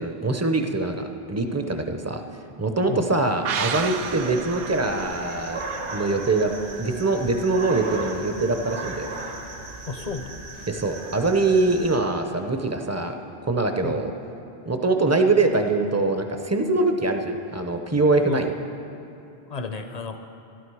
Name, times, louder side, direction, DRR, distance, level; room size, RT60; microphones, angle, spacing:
voice 1, 0.0-2.2 2.6-5.6 5.9-9.1 10.7-13.1 13.5-14.1 14.7-18.5, right 3 dB, 20° right, 6 dB, 0.4 m, -23 dB
sound 1, 3.4-6.9 7.2-7.3, right 7 dB, 65° right, 0.7 m, -33 dB
sound 2, 3.7-12.0, right 3 dB, 85° right, 1.7 m, -36 dB
voice 2, 9.9-10.3 13.8-14.0 18.3-18.4 19.5-20.3, left 4 dB, 45° left, 7 dB, 0.6 m, -31 dB
12.5 x 12.0 x 4.7 m, 2.7 s
omnidirectional pair, 1.1 m